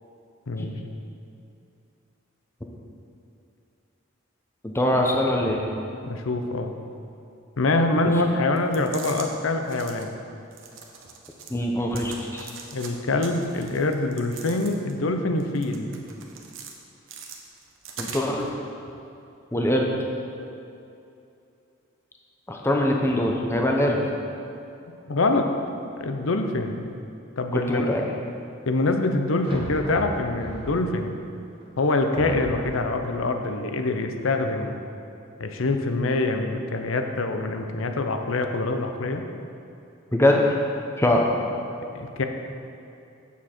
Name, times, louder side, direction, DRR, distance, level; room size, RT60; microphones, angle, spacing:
voice 1, 0.5-0.8 6.0-6.7 7.6-10.1 12.7-16.0 25.1-25.5 26.0-27.0 27.4-28.0 28.7-31.1 31.8-34.7 35.4-39.2 41.9-42.3, left 2 dB, 80° left, 5 dB, 0.7 m, -25 dB
voice 2, 4.6-5.6 8.0-8.1 11.5-12.5 18.0-18.5 19.5-19.9 22.5-24.0 27.5-28.0 40.1-40.4 41.0-41.2, left 1 dB, 10° left, 0 dB, 0.7 m, -23 dB
sound 1, 8.6-9.3 9.6-10.1 10.5-11.6 11.9-12.9 13.2-15.0 15.4-16.7 17.1-18.5, right 5 dB, 70° right, 0.9 m, -41 dB
sound 2, 29.4-31.0 31.6-31.7 32.1-33.0, right 1 dB, 25° right, 1.0 m, -36 dB
8.5 x 7.2 x 4.4 m, 2.7 s
head